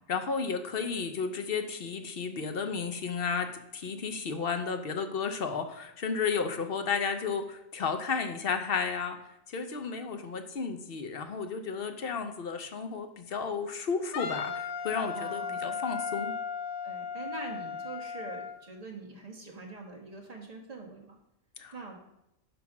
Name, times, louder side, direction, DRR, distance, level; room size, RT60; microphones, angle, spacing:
voice 1, 0.1-9.2 9.5-16.3 21.6-21.7, left 5 dB, 50° left, 7 dB, 0.8 m, -33 dB
Wind instrument woodwind instrument, 14.1-18.6, left 6 dB, 80° left, 1.1 m, -36 dB
voice 2, 15.1-15.8 16.8-21.2 21.7-22.0, right 3 dB, 30° right, 1 dB, 1.4 m, -44 dB
10.0 x 3.4 x 5.9 m, 0.86 s
omnidirectional pair, 1.4 m